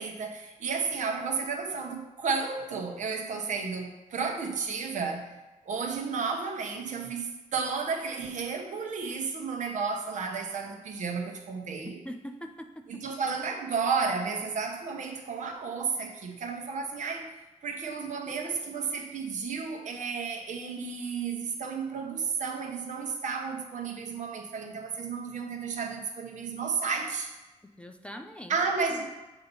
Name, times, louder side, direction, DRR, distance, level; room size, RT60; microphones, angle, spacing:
voice 1, 0.0-5.4 5.7-12.0 13.0-17.3 17.6-27.3 28.5-29.0, right 5 dB, 70° right, 3 dB, 1.0 m, -32 dB
voice 2, 12.0-13.0 27.6-28.6 28.9-29.0, equal, 10° left, 5 dB, 0.4 m, -43 dB
7.9 x 2.9 x 5.4 m, 1.1 s
wide cardioid pair, 125°, 13 cm